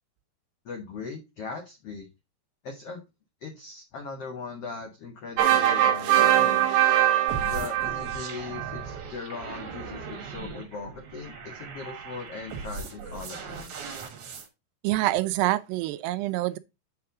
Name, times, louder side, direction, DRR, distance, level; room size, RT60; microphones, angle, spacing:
voice 1, 0.6-2.1 2.6-3.0 3.4-6.6 7.4-14.0, left 4 dB, 80° left, 1.3 m, -39 dB
sound 1, 5.4-8.8, right 12 dB, 70° right, 1.8 m, -22 dB
sound 2, 7.3-14.5, right 5 dB, 55° right, 2.7 m, -39 dB
voice 2, 14.8-16.6, right 17 dB, 90° right, 2.7 m, -26 dB
8.4 x 5.9 x 3.7 m
omnidirectional pair, 4.7 m